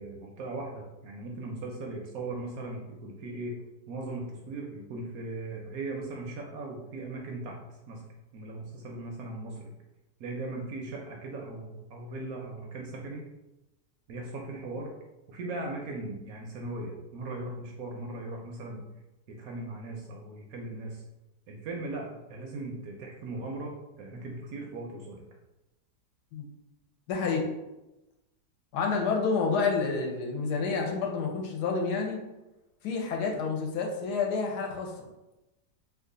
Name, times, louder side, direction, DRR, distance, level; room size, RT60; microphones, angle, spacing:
voice 1, 0.0-3.5 3.9-7.6 7.9-8.0 8.3-9.7 10.2-13.2 14.1-14.9 15.3-18.8 19.3-21.0 21.5-25.2, right 2 dB, 70° right, 0 dB, 0.9 m, -38 dB
voice 2, 27.1-27.5 28.7-32.2 32.8-35.1, left 4 dB, 75° left, 1 dB, 1.2 m, -29 dB
3.0 x 2.3 x 3.7 m, 0.98 s
omnidirectional pair, 1.8 m